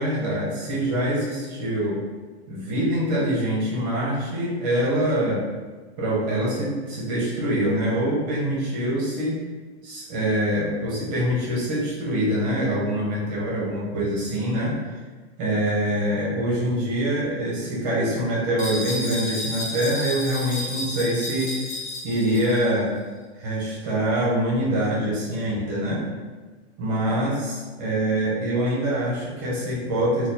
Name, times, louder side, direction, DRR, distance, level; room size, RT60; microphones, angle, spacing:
voice 1, 0.0-2.0 2.5-5.5 6.0-9.4 9.8-14.8 15.4-21.6 22.0-23.0 23.4-26.1 26.8-30.3, right 1 dB, 25° right, -5 dB, 0.7 m, -24 dB
sound 1, 18.6-22.7, left 1 dB, 40° left, 1.2 m, -32 dB
3.9 x 2.3 x 2.7 m, 1.3 s
supercardioid pair, 170°, 33 cm